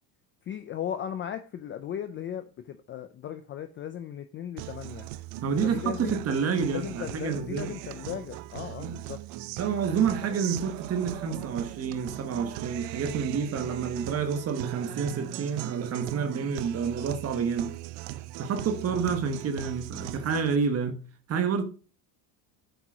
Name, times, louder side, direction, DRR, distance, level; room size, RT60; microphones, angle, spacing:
voice 1, 0.4-5.1 5.6-6.2 6.7-9.2 17.0-17.1 18.5-18.6 18.9-19.1, left 9 dB, 30° left, 0.3 m, -37 dB
Guitar, 4.6-20.6, right 15 dB, 70° right, 0.7 m, -39 dB
voice 2, 5.4-7.8 8.8-9.0 9.6-17.8 18.4-21.0 21.3-21.6, right 6 dB, 30° right, 1.2 m, -29 dB
8.0 x 4.5 x 6.1 m
cardioid pair, 155°, 48 cm